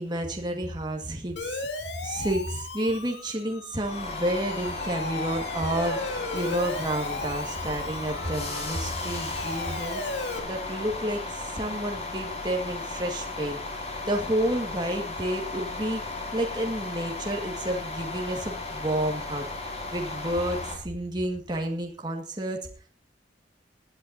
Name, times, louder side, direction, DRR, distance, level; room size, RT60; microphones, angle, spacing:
voice 1, 0.0-10.0 10.4-13.6 14.1-16.0 16.3-19.5 19.9-22.7, right 1 dB, 25° right, 1 dB, 1.9 m, -30 dB
Siren, 1.4-10.4, left 3 dB, 65° left, 2.5 m, -36 dB
sound 1, 3.7-20.8, left 3 dB, 35° left, 5.6 m, -35 dB
20.0 x 12.0 x 2.8 m, 0.37 s
head